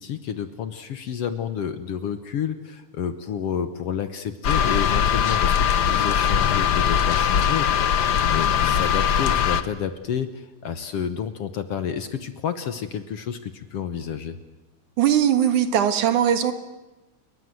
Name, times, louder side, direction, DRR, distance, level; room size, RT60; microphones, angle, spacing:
voice 1, 0.0-8.0 8.3-14.4, left 8 dB, 60° left, 11 dB, 1.8 m, -30 dB
sound 1, 4.4-9.6, left 8 dB, 75° left, 0.9 m, -21 dB
voice 2, 15.0-16.5, right 9 dB, 75° right, 10 dB, 3.2 m, -20 dB
29.0 x 22.5 x 7.8 m, 1.1 s
omnidirectional pair, 3.6 m